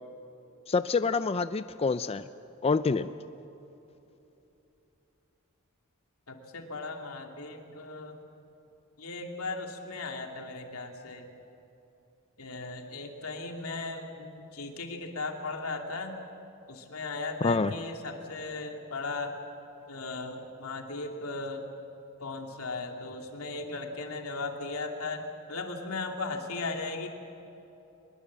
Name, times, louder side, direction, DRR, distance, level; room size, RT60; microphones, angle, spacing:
voice 1, 0.7-2.2 2.6-3.1 17.4-17.7, left 4 dB, 30° left, 12 dB, 0.4 m, -26 dB
voice 2, 6.3-8.2 9.0-11.3 12.4-16.2 16.7-19.4 19.9-21.7 22.2-27.1, left 3 dB, 85° left, 3 dB, 2.7 m, -37 dB
23.5 x 21.5 x 7.5 m, 3.0 s
head